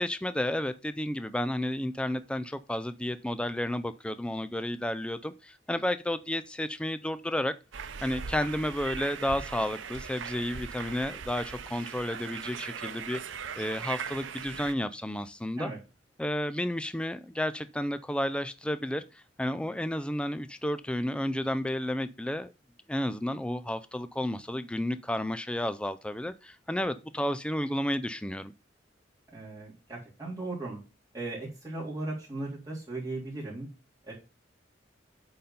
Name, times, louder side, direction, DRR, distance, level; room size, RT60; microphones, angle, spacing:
voice 1, 0.0-7.5 8.0-13.2 13.6-15.7 16.2-22.5 22.9-28.5, left 1 dB, 5° left, 0.4 m, -32 dB
sound 1, 7.7-14.7, right 6 dB, 85° right, 0.7 m, -39 dB
voice 2, 29.3-30.8 31.1-33.7 34.0-34.1, right 2 dB, 20° right, 3.3 m, -37 dB
8.5 x 3.9 x 5.4 m
head